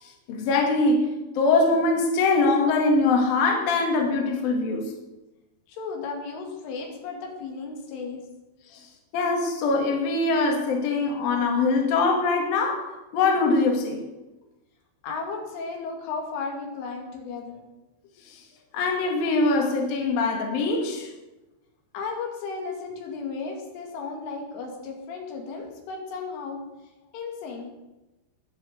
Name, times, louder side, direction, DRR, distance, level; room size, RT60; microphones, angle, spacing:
voice 1, 0.0-4.9 8.7-8.8 9.1-14.0 18.3-18.4 18.7-21.1, left 3 dB, 55° left, 1 dB, 3.8 m, -23 dB
voice 2, 5.7-8.2 15.0-17.7 21.9-26.6 27.1-27.7, left 4 dB, 80° left, 1 dB, 5.0 m, -34 dB
20.5 x 7.0 x 8.2 m, 1.0 s
omnidirectional pair, 5.6 m